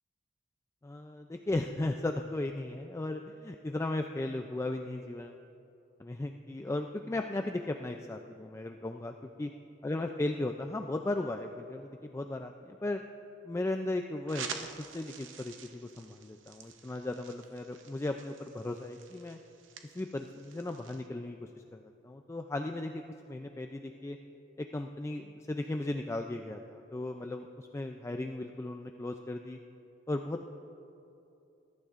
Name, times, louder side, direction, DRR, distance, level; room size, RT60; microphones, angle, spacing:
voice 1, 0.8-5.4 6.0-9.5 9.8-13.0 13.4-19.4 19.8-23.0 23.3-24.2 24.6-29.6 30.1-30.4, left 2 dB, 15° left, 4 dB, 0.3 m, -36 dB
sound 1, 14.3-21.1, right 6 dB, 70° right, 0.7 m, -47 dB
20.5 x 12.0 x 2.5 m, 2.8 s
head